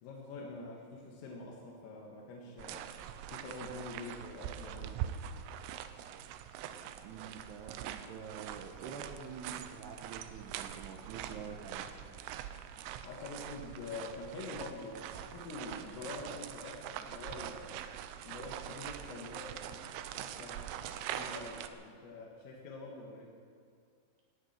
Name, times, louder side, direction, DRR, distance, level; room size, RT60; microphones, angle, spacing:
voice 1, 0.0-2.9 3.3-5.2 13.0-17.8 18.2-23.3, left 3 dB, 90° left, -2 dB, 4.4 m, -46 dB
sound 1, 2.6-21.7, right 10 dB, 85° right, 3.3 m, -43 dB
voice 2, 7.0-11.9, right 6 dB, 70° right, 0 dB, 2.8 m, -47 dB
18.0 x 16.0 x 4.4 m, 2.2 s
omnidirectional pair, 5.7 m